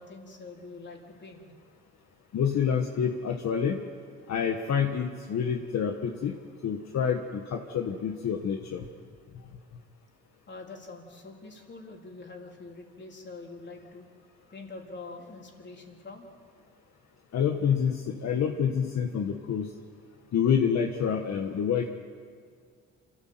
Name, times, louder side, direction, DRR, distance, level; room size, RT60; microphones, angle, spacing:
voice 1, 0.0-1.4 10.5-14.1 14.5-16.3, left 3 dB, 35° left, 1 dB, 3.8 m, -45 dB
voice 2, 2.3-3.8 4.3-6.3 6.6-8.9 17.3-19.7 20.3-21.9, left 7 dB, 60° left, 3 dB, 1.5 m, -27 dB
27.0 x 14.5 x 7.8 m, 2.1 s
cardioid pair, 90°, 30 cm